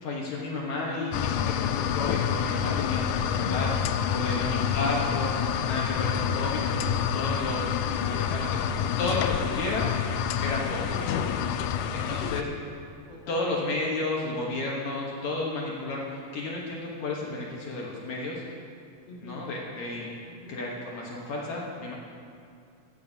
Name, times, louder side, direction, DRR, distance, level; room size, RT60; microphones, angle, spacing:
voice 1, 0.0-5.3 5.6-7.6 8.0-8.6 9.0-9.9 10.4-10.8 11.9-12.4 13.3-18.4 19.2-20.1 20.5-21.9, left 2 dB, 65° left, -3 dB, 2.3 m, -32 dB
sound 1, 1.1-12.4, left 8 dB, 85° left, 1.7 m, -28 dB
voice 2, 4.2-4.6 10.6-11.9 12.2-12.7 13.1-13.4 19.0-19.5 20.3-20.6, left 2 dB, 25° left, -5 dB, 1.8 m, -42 dB
16.0 x 14.5 x 2.8 m, 2.4 s
omnidirectional pair, 3.9 m